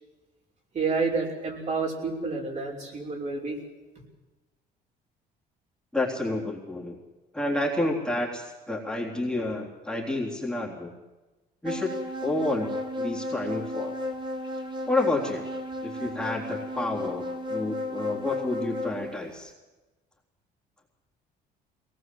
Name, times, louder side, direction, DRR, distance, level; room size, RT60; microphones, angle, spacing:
voice 1, 0.7-3.6, right 4 dB, 45° right, -1 dB, 5.9 m, -29 dB
voice 2, 5.9-7.0 7.3-10.9 11.6-11.9 12.2-13.9 14.9-15.4 15.8-19.5, left 2 dB, 5° left, -3 dB, 3.7 m, -29 dB
sound 1, 11.7-19.1, left 1 dB, 30° right, 2.4 m, -34 dB
22.0 x 19.0 x 7.9 m, 1.1 s
cardioid pair, 110°, 17 cm